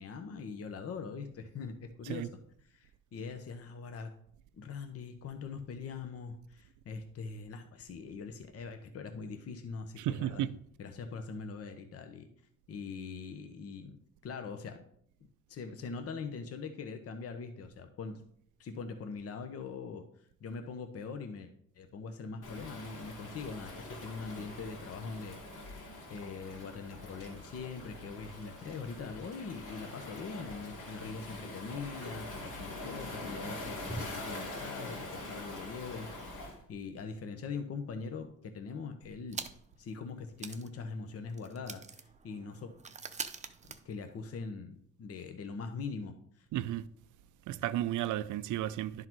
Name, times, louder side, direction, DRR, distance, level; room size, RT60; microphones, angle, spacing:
voice 1, 0.0-2.3 2.7-4.1 4.5-10.4 10.8-12.3 12.7-14.0 14.2-14.8 15.5-18.3 18.6-20.0 20.4-21.5 21.7-39.5 39.8-42.7 43.7-46.5, left 5 dB, 50° left, 0.9 m, -42 dB
voice 2, 10.0-10.6 46.5-46.9 47.5-49.1, right 13 dB, 80° right, 0.5 m, -33 dB
Waves surf, 22.4-36.6, left 2 dB, 75° left, 2.5 m, -44 dB
sound 1, 33.6-36.7, equal, 5° right, 1.3 m, -49 dB
sound 2, 39.3-39.8 40.1-40.2 40.4-44.5, right 5 dB, 25° right, 0.6 m, -45 dB
11.0 x 3.9 x 4.5 m
cardioid pair, 90°, 30 cm